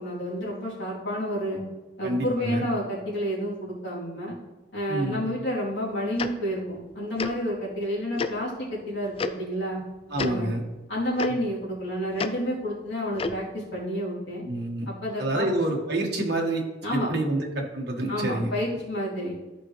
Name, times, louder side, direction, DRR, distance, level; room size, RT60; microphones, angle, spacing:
voice 1, 0.0-1.6 2.0-4.4 4.7-9.8 10.2-10.5 10.9-14.5 15.0-15.5 16.8-17.1 18.1-19.3, equal, 65° left, -7 dB, 3.1 m, -30 dB
voice 2, 2.0-2.6 4.9-5.3 10.1-10.6 11.3-11.4 14.4-14.9 15.2-16.6 16.9-18.5, right 1 dB, 60° right, 0 dB, 1.5 m, -28 dB
Tick-tock, 6.2-6.3 7.2-7.3 8.2-8.3 9.2-9.3 10.1-10.3 11.2-11.3 12.2-12.3 13.2-13.4, left 4 dB, 30° left, 0.4 m, -28 dB
13.0 x 5.1 x 3.2 m, 1.1 s
head